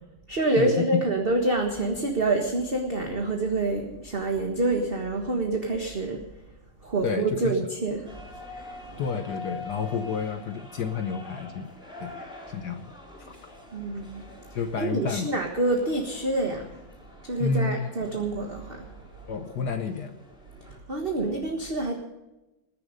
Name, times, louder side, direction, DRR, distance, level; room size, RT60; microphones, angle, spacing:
voice 1, 0.3-6.2 6.8-8.2 8.5-9.0 12.1-12.2 13.7-14.2 14.8-16.7 17.2-18.9 20.7-21.9, right 2 dB, 30° right, 2 dB, 1.6 m, -27 dB
voice 2, 7.0-7.5 9.0-11.7 12.0-12.9 13.2-13.4 14.5-15.3 17.4-17.9 19.3-20.1, left 5 dB, 60° left, 8 dB, 1.4 m, -30 dB
sound 1, 8.0-20.8, left 2 dB, ahead, 4.3 m, -45 dB
20.0 x 10.5 x 5.2 m, 0.99 s
omnidirectional pair, 2.1 m